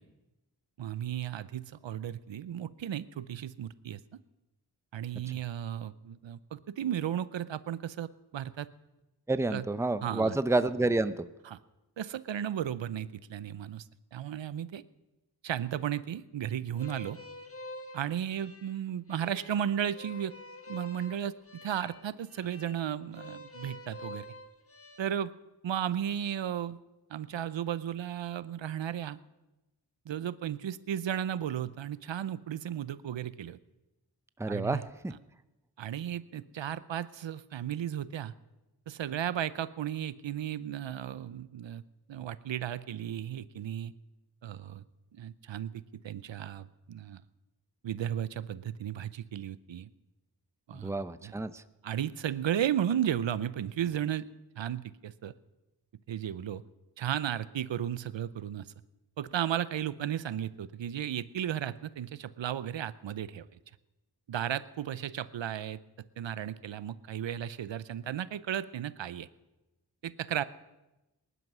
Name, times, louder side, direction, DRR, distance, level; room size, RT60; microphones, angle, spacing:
voice 1, 0.8-4.0 4.9-8.7 9.5-9.6 10.0-10.3 11.5-11.6 12.0-13.8 14.1-14.8 15.4-17.2 17.9-20.3 20.7-21.3 21.6-24.2 25.0-25.3 25.6-26.8 27.1-29.2 30.1-33.6 34.5-34.8 35.8-38.3 38.9-41.8 42.1-43.9 44.4-44.8 45.1-47.2 47.8-49.9 50.7-51.3 51.8-54.3 54.6-55.3 56.1-56.6 57.0-58.7 59.2-63.5 64.3-65.8 66.2-69.3 70.0-70.4, right 10 dB, 85° right, 17 dB, 0.7 m, -34 dB
voice 2, 9.3-11.3 34.4-35.1 50.7-51.6, right 2 dB, 5° right, 13 dB, 0.7 m, -29 dB
sound 1, 16.8-25.0, left 1 dB, 30° left, 1.5 m, -47 dB
19.5 x 11.0 x 6.1 m, 1.0 s
cardioid pair, 50°, 43 cm